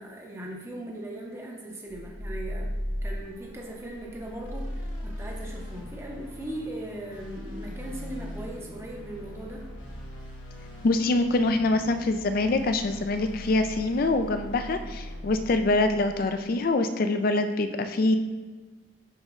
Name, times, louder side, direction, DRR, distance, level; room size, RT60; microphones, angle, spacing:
voice 1, 0.0-9.7, right 1 dB, 15° right, -2 dB, 0.7 m, -39 dB
sound 1, 1.9-16.5, equal, 65° left, 1.3 m, -39 dB
voice 2, 10.8-18.2, left 2 dB, 45° left, 8 dB, 0.4 m, -25 dB
10.0 x 4.2 x 2.4 m, 1.4 s
head